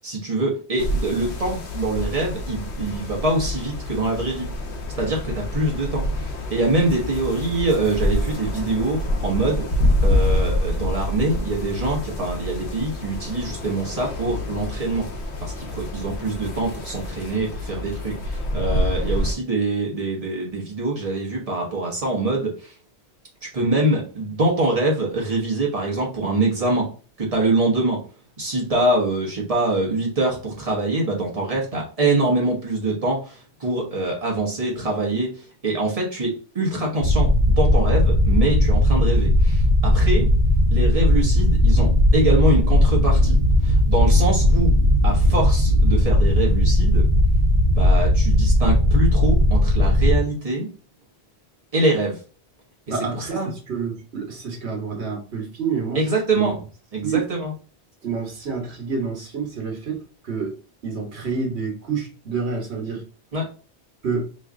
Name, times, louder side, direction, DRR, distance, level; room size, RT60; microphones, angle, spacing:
voice 1, 0.0-4.5 5.0-9.7 10.0-15.1 15.4-22.7 23.4-26.9 27.2-28.0 28.4-37.3 37.6-40.3 40.7-44.7 45.0-47.1 47.7-50.7 51.7-52.2 53.1-53.5 55.9-56.5 56.9-57.5 63.3-63.5, right 2 dB, 35° right, -2 dB, 1.2 m, -24 dB
sound 1, 0.8-19.3, left 1 dB, 85° left, 1.0 m, -27 dB
sound 2, 37.0-50.2, left 1 dB, 55° right, 1.1 m, -17 dB
voice 2, 52.9-56.0 56.3-56.5 57.0-57.2 58.0-60.5 60.8-63.0 64.0-64.3, right 5 dB, 75° right, 1 dB, 1.4 m, -28 dB
3.2 x 2.3 x 3.7 m, 0.37 s
omnidirectional pair, 1.1 m